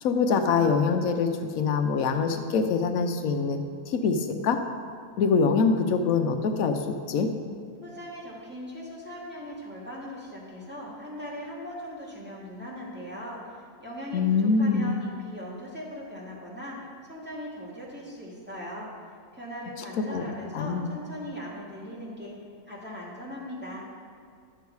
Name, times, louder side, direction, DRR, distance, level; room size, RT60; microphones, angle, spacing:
voice 1, 0.0-4.6 5.2-7.3 14.1-14.9 20.1-20.2 20.5-20.9, left 5 dB, 85° left, 6 dB, 1.1 m, -24 dB
voice 2, 7.8-16.8 17.0-22.3 22.7-23.9, equal, 10° right, -7 dB, 2.0 m, -39 dB
11.0 x 6.8 x 4.6 m, 2.2 s
omnidirectional pair, 1.4 m